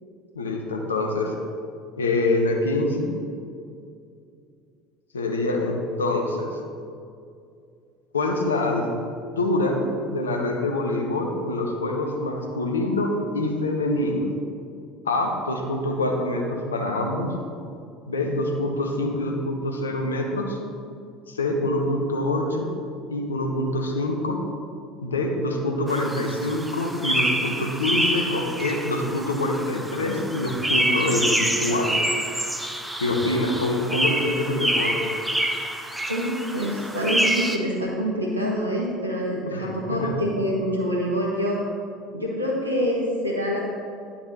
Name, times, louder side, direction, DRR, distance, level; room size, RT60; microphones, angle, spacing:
voice 1, 0.3-1.3 2.0-3.1 5.1-6.6 8.1-8.9 9.4-9.8 10.1-14.3 15.0-17.3 18.1-20.6 21.3-22.7 23.1-24.4 25.0-32.1 33.0-35.1 39.5-40.1, left 2 dB, 80° left, 2 dB, 0.9 m, -25 dB
sound 1, 25.9-37.6, right 1 dB, 5° right, 0.7 m, -27 dB
voice 2, 36.1-41.6 42.1-43.6, equal, 90° right, -3 dB, 1.4 m, -26 dB
10.0 x 5.8 x 4.0 m, 2.4 s
figure-of-eight pair, 65°, 0 cm